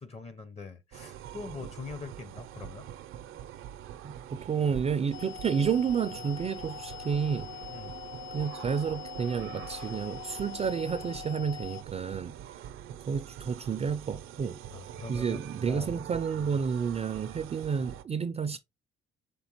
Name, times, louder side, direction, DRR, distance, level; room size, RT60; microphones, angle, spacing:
voice 1, 0.0-2.9 7.7-8.0 14.7-16.0, left 4 dB, 30° left, 0.7 m, -43 dB
sound 1, 0.9-18.0, right 11 dB, 80° right, 0.6 m, -44 dB
voice 2, 4.0-7.5 8.3-12.4 13.1-14.6 15.1-18.6, right 6 dB, 30° right, 0.4 m, -30 dB
sound 2, 5.1-11.8, left 13 dB, 70° left, 0.6 m, -44 dB
5.1 x 3.3 x 2.9 m
supercardioid pair, 75°, 21 cm